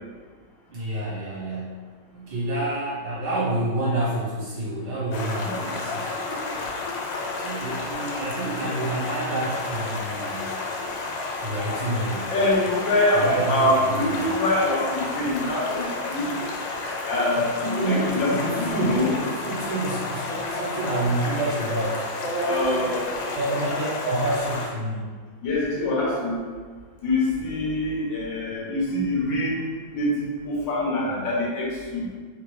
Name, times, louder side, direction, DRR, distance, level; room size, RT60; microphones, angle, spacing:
voice 1, 0.7-6.0 7.4-10.5 11.4-12.3 13.1-14.2 17.6-23.0 23.3-25.1, right 1 dB, 55° right, -9 dB, 1.8 m, -28 dB
Stream, 5.1-24.7, left 3 dB, 90° left, 1.5 m, -31 dB
voice 2, 12.3-16.3 17.1-19.1 22.4-23.0 25.4-26.4 27.0-29.6 29.9-32.0, left 1 dB, 70° left, -4 dB, 1.5 m, -24 dB
3.7 x 3.5 x 3.2 m, 1.6 s
omnidirectional pair, 2.2 m